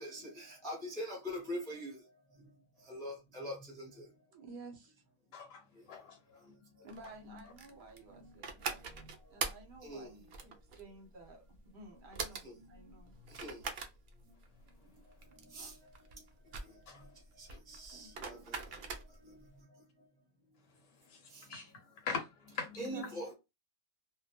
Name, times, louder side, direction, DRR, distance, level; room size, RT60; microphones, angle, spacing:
voice 1, 0.0-2.0 2.9-3.9 7.3-7.4 8.1-8.3 9.8-10.1 12.4-12.7 13.4-13.6 15.5-15.7 17.7-18.4 19.2-19.3 22.8-23.3, equal, 5° left, 0.5 m, -42 dB
voice 2, 4.3-4.9 6.8-8.8 9.3-11.4 11.7-13.1 15.3-15.6 17.9-18.5 22.8-23.2, right 3 dB, 50° right, 0.8 m, -53 dB
voice 3, 5.3-6.2 16.9-17.0 17.5-17.6 20.7-22.8, left 5 dB, 70° left, 1.0 m, -43 dB
sound 1, 6.9-19.4, right 5 dB, 85° right, 0.4 m, -43 dB
2.3 x 2.1 x 2.8 m
omnidirectional pair, 1.4 m